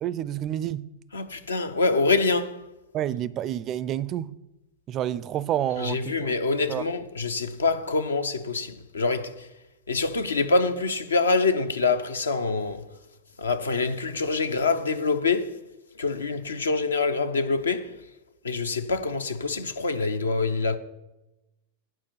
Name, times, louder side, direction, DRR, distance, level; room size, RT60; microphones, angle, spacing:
voice 1, 0.0-0.8 2.9-4.3 4.9-6.3 6.7-6.9, right 11 dB, 35° right, 0.4 m, -29 dB
voice 2, 1.1-2.7 5.8-9.5 9.9-12.8 13.4-15.6 16.0-18.0 18.4-20.8, left 3 dB, 75° left, 0.6 m, -25 dB
8.9 x 4.8 x 6.8 m
figure-of-eight pair, 90°, 0 cm